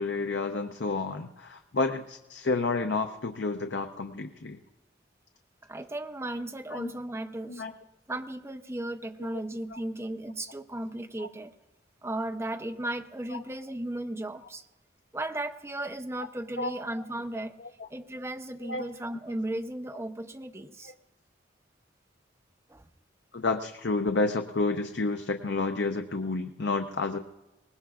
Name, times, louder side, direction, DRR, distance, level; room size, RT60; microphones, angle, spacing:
voice 1, 0.0-4.6 6.7-6.9 7.5-7.7 9.2-9.4 9.7-9.8 11.2-11.3 13.3-13.4 16.6-16.7 17.8-17.9 18.7-18.9 23.3-27.2, left 3 dB, 70° left, 6 dB, 0.7 m, -30 dB
voice 2, 5.6-7.6 8.1-11.5 12.0-14.6 15.1-17.6 17.9-20.9 22.7-22.9, right 1 dB, 15° right, 5 dB, 0.6 m, -35 dB
23.5 x 20.0 x 2.4 m, 1.0 s
head